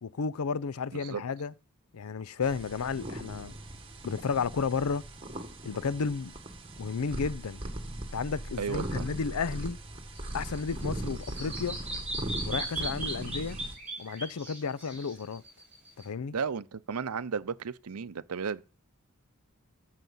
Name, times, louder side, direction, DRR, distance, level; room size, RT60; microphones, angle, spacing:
voice 1, 0.0-1.5 1.9-3.5 4.0-5.0 5.6-6.3 6.8-7.6 8.1-9.8 10.3-11.8 12.5-13.6 14.0-15.4 16.0-16.3, left 5 dB, 85° left, 0.5 m, -32 dB
sound 1, 2.4-13.8, right 1 dB, 25° right, 1.8 m, -39 dB
voice 2, 8.6-9.0 16.3-18.6, right 6 dB, 85° right, 0.6 m, -34 dB
Bird vocalization bird call bird song, 10.1-16.0, right 2 dB, 5° right, 7.0 m, -38 dB
15.0 x 6.6 x 5.5 m
head